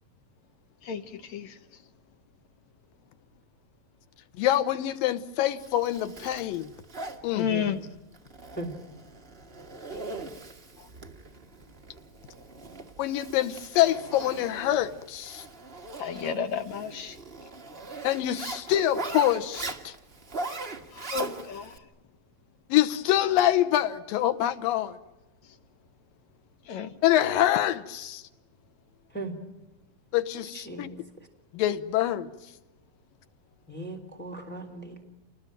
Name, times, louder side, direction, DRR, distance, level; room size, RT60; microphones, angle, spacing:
voice 1, 0.8-1.6 7.4-7.8 16.0-17.2 20.9-21.8 26.7-26.9, left 7 dB, 65° left, 2.1 m, -32 dB
voice 2, 4.4-6.7 7.2-7.5 13.0-15.5 18.0-19.9 22.7-25.0 27.0-28.2 30.1-30.9 31.5-32.3, left 12 dB, 90° left, 2.8 m, -25 dB
Zipper (clothing), 5.6-21.8, right 3 dB, 30° right, 1.1 m, -40 dB
voice 3, 7.5-7.9 8.5-8.7 29.1-29.4 30.5-31.0 33.7-35.0, right 2 dB, 5° left, 3.2 m, -38 dB
28.5 x 20.5 x 9.1 m
omnidirectional pair, 3.9 m